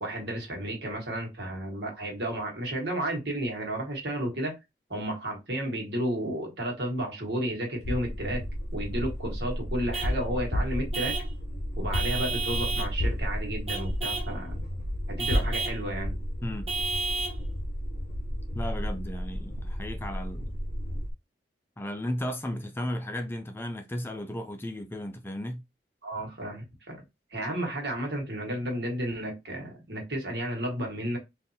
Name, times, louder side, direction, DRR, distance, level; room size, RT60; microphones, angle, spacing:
voice 1, 0.0-4.6 4.9-8.4 8.7-11.2 11.8-14.6 15.1-16.1 26.0-27.0 27.3-31.2, right 1 dB, 75° right, 1.5 m, -32 dB
sound 1, 7.8-21.1, equal, 55° left, 0.7 m, -32 dB
Vehicle horn car horn honking / Truck, 9.9-10.2 10.9-11.3 11.9-12.9 13.7-14.3 15.2-15.8 16.7-17.4, right 3 dB, 35° right, 1.2 m, -32 dB
voice 2, 18.5-20.5 21.8-25.6, left 1 dB, 15° left, 0.4 m, -35 dB
3.7 x 2.6 x 2.7 m
head